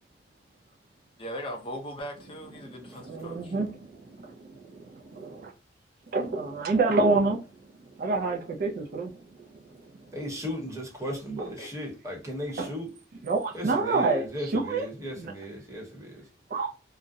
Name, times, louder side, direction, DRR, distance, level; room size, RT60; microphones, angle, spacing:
voice 1, 1.2-3.5 11.6-11.8, equal, 30° left, 0.5 m, -39 dB
voice 2, 3.0-5.5 6.1-7.4 8.0-9.1 11.4-11.5 12.6-12.7 13.2-14.9 15.2-15.3 16.5-16.7, right 3 dB, 50° right, 0.4 m, -28 dB
voice 3, 10.1-12.9 13.5-16.2, equal, 15° right, 0.9 m, -36 dB
2.3 x 2.0 x 2.6 m
head